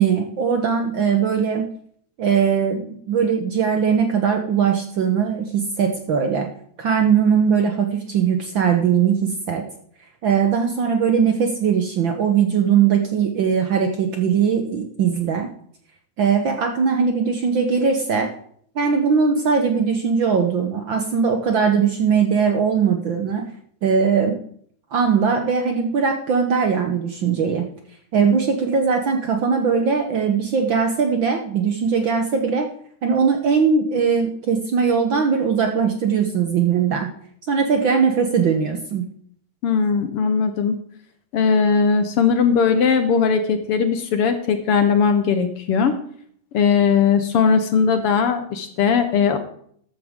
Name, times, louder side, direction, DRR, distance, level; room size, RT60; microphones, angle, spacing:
voice 1, 0.0-1.7 2.2-6.5 6.8-9.6 10.2-15.5 16.2-18.3 18.7-23.4 23.8-24.4 24.9-27.7 28.1-32.7 33.0-37.1 37.5-39.1, right 6 dB, 65° right, 4 dB, 1.2 m, -20 dB
voice 2, 39.6-40.8 41.3-45.9 46.5-49.4, left 6 dB, 65° left, 8 dB, 1.6 m, -19 dB
13.5 x 12.0 x 3.6 m, 0.62 s
omnidirectional pair, 3.3 m